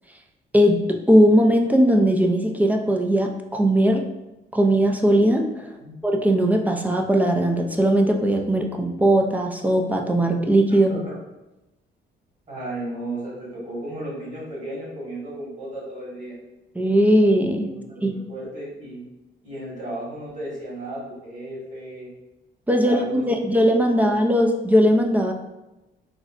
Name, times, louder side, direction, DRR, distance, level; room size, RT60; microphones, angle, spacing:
voice 1, 0.5-4.0 4.5-5.7 6.0-11.0 16.8-17.7 18.0-18.1 22.7-25.3, equal, 10° right, 2 dB, 0.3 m, -19 dB
voice 2, 12.5-16.4 17.7-19.0 19.4-22.1 22.7-23.5 23.9-24.0, right 1 dB, 40° right, -6 dB, 1.5 m, -34 dB
3.7 x 2.0 x 2.4 m, 0.99 s
cardioid pair, 90°, 20 cm